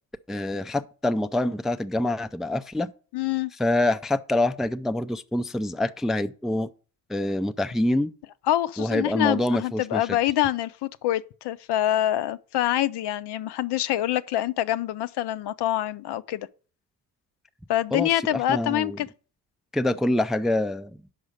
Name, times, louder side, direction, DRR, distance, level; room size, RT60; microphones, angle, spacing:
voice 1, 0.3-2.9 3.6-6.7 7.1-8.1 8.8-10.1 17.9-19.0 19.7-21.1, left 1 dB, ahead, 0.3 m, -26 dB
voice 2, 3.1-3.5 8.5-16.5 17.7-19.1, left 13 dB, 70° left, 0.5 m, -25 dB
5.4 x 5.0 x 6.5 m
supercardioid pair, 60°, 42 cm